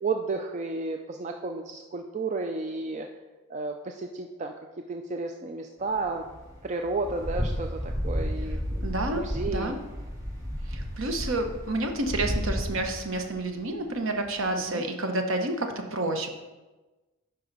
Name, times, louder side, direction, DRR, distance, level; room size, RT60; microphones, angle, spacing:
voice 1, 0.0-3.1 3.5-6.2 6.6-8.9 9.1-9.8 14.5-14.8, right 3 dB, 30° right, 4 dB, 0.3 m, -32 dB
sound 1, 6.1-13.4 13.7-13.8 14.3-14.4, equal, 15° right, 1.5 m, -32 dB
voice 2, 8.5-9.8 10.7-16.3, right 2 dB, 60° right, 5 dB, 0.9 m, -30 dB
9.4 x 5.7 x 4.0 m, 1.2 s
head